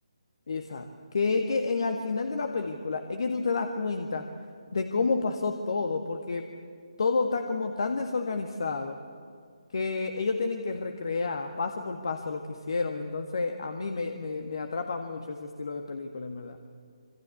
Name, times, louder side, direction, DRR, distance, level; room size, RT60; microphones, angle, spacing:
voice 1, 0.5-4.3 4.7-6.5 7.0-9.0 9.7-16.6, left 4 dB, 50° left, 6 dB, 1.7 m, -30 dB
26.5 x 25.5 x 8.3 m, 2.2 s
figure-of-eight pair, 145°, 3 cm